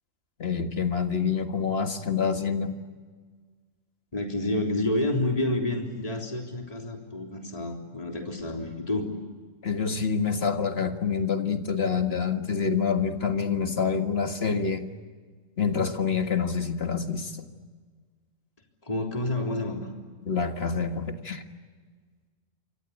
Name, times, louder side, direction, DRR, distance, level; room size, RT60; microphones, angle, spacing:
voice 1, 0.4-2.7 9.6-14.9 15.6-17.5 20.2-21.4, left 6 dB, 50° left, 6 dB, 2.0 m, -27 dB
voice 2, 4.1-9.1 18.8-19.9, left 1 dB, 25° left, 1 dB, 3.6 m, -29 dB
28.0 x 25.0 x 8.2 m, 1.5 s
omnidirectional pair, 1.4 m